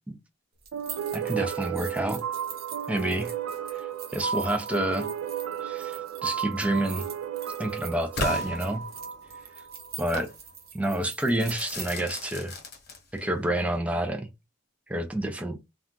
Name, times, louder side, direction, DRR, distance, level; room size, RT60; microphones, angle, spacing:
sound 1, 0.6-11.9, right 7 dB, 45° right, 0.7 m, -44 dB
sound 2, 0.7-10.0, right 8 dB, 85° right, 0.4 m, -34 dB
voice 1, 1.1-2.2 2.9-3.3 3.7-3.9 4.1-5.1 5.6-7.0 7.6-8.9 10.0-10.3 10.7-12.6 13.1-14.3 14.9-15.6, right 1 dB, 5° right, 0.4 m, -28 dB
Crackle / Fireworks, 8.2-9.3 10.1-10.4 11.4-13.4, left 2 dB, 50° left, 1.0 m, -36 dB
2.4 x 2.3 x 3.7 m
head